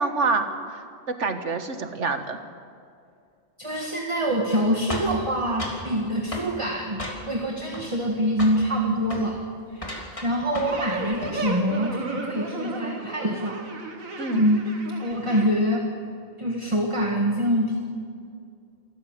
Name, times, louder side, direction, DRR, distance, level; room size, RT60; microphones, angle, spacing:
voice 1, 0.0-2.4 14.2-14.4, right 4 dB, 60° right, 7 dB, 1.8 m, -27 dB
voice 2, 3.6-9.4 9.7-13.6 14.3-14.7 15.0-15.9 16.4-17.8, equal, 25° right, 1 dB, 1.8 m, -25 dB
sound 1, 4.9-5.9 6.3-6.5 7.0-7.5 7.7-8.1 8.4-8.6 9.0-9.3 9.8-10.9 11.1-11.4, equal, 25° left, 3.3 m, -34 dB
sound 2, 10.6-15.5, right 2 dB, 90° right, 2.4 m, -34 dB
27.5 x 14.5 x 7.5 m, 2.4 s
omnidirectional pair, 1.4 m